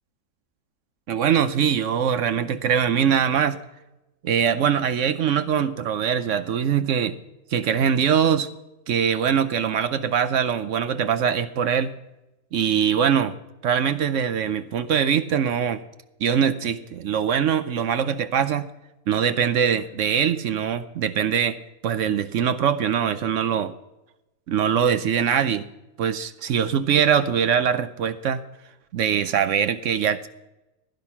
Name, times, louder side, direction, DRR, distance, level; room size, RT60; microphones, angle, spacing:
voice 1, 1.1-3.6 4.2-7.2 7.5-8.5 8.9-11.9 12.5-13.3 13.6-15.8 16.2-18.7 19.1-21.6 21.8-23.7 24.5-25.6 26.0-28.4 28.9-30.3, right 8 dB, 65° right, 12 dB, 0.7 m, -22 dB
15.5 x 10.5 x 5.8 m, 0.97 s
omnidirectional pair, 1.9 m